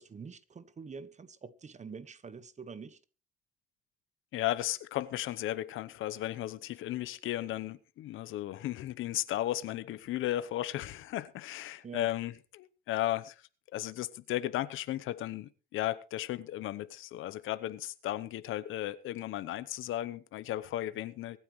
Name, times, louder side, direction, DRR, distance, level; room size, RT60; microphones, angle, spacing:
voice 1, 0.0-3.0 11.8-12.1, right 5 dB, 35° right, 1.3 m, -46 dB
voice 2, 4.3-13.3 13.7-21.4, left 14 dB, 85° left, 1.0 m, -35 dB
24.0 x 9.3 x 3.2 m
cardioid pair, 90°, 20 cm